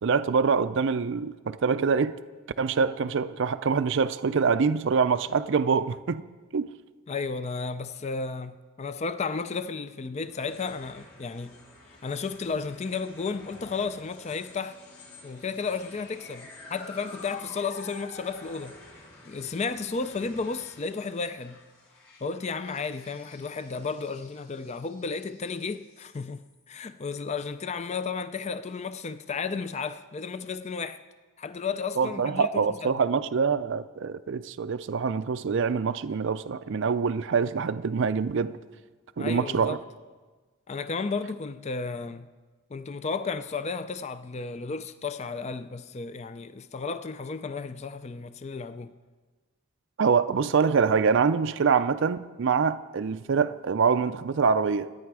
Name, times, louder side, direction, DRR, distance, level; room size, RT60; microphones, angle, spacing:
voice 1, 0.0-2.2 2.6-6.2 6.5-6.7 32.0-38.5 39.2-39.8 50.0-54.9, right 5 dB, 55° right, 0.4 m, -25 dB
voice 2, 7.1-11.5 11.9-14.8 15.2-18.8 19.2-21.6 22.2-31.0 31.4-33.0 39.2-39.8 40.7-42.3 42.7-48.9, left 4 dB, 30° left, 0.4 m, -33 dB
sound 1, 10.2-26.7, left 2 dB, 65° left, 4.8 m, -50 dB
26.5 x 9.4 x 4.8 m
head